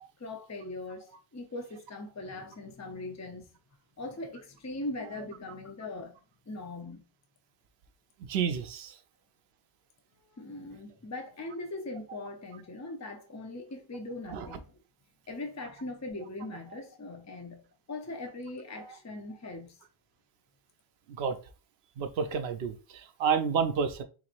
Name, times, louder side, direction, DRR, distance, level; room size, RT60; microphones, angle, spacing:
voice 1, 0.2-3.5 4.0-6.2 6.5-7.1 10.4-14.8 15.3-19.8, left 2 dB, 20° left, 0.5 m, -40 dB
voice 2, 8.3-8.9 14.3-14.5 21.2-21.4 22.0-24.0, right 6 dB, 85° right, 0.8 m, -30 dB
4.0 x 3.0 x 2.4 m
omnidirectional pair, 1.0 m